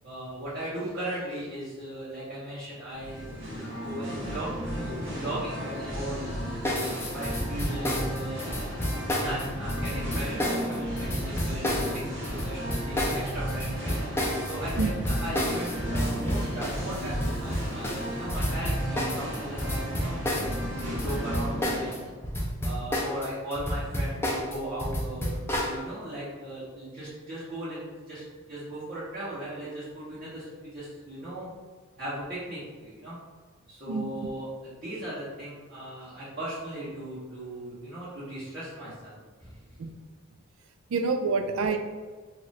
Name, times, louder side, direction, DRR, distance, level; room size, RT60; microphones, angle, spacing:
voice 1, 0.0-6.2 6.7-8.4 9.2-13.9 14.4-22.0 22.6-31.5 32.0-33.2 33.7-39.6 41.5-41.6, right 1 dB, 45° right, -15 dB, 1.4 m, -38 dB
Singing, 2.9-22.1, equal, 65° right, 1.1 m, -34 dB
sound 1, 6.6-22.0 22.2-25.8, equal, 10° left, 0.5 m, -30 dB
voice 2, 33.9-34.3 39.8-40.0 40.9-41.8, right 4 dB, 80° right, 7 dB, 0.4 m, -28 dB
3.0 x 2.5 x 4.0 m, 1.4 s
head